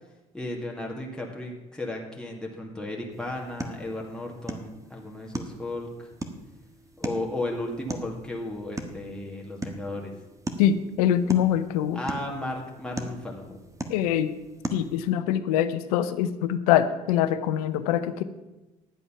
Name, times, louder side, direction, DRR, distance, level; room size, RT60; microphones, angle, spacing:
voice 1, 0.3-6.1 7.0-10.1 11.9-13.6, left 1 dB, 5° left, -1 dB, 2.2 m, -34 dB
sound 1, 3.1-15.1, right 2 dB, 15° right, 1.5 m, -39 dB
voice 2, 10.6-12.0 13.9-14.3 14.7-18.2, left 10 dB, 80° left, 13 dB, 0.7 m, -24 dB
11.5 x 8.0 x 5.8 m, 1.1 s
hypercardioid pair, 65°, 19 cm